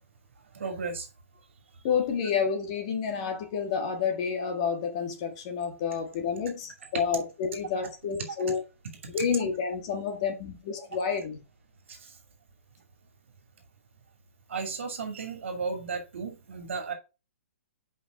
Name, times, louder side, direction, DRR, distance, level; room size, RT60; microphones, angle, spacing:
voice 1, 0.5-1.1 6.9-7.0 11.9-12.2 14.5-16.9, right 4 dB, 55° right, 2.5 m, -34 dB
voice 2, 1.8-8.6 9.1-11.4, left 6 dB, 25° left, 1.6 m, -29 dB
5.3 x 5.2 x 6.5 m
hypercardioid pair, 180°, 8 cm